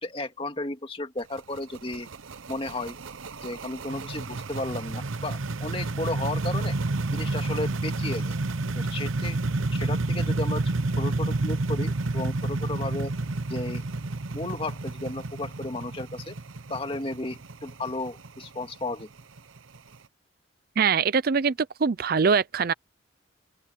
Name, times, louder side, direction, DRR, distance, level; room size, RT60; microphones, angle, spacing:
voice 1, 0.0-2.1 2.5-3.0 3.4-6.8 7.1-8.4 8.7-9.4 9.7-13.1 13.5-13.8 14.3-16.4 16.7-19.1, left 2 dB, 30° left, 2.2 m, -34 dB
sound 1, 1.2-19.9, right 2 dB, 85° right, 0.9 m, -30 dB
voice 2, 20.8-21.5 21.8-22.7, right 5 dB, 50° right, 0.5 m, -22 dB
open air
head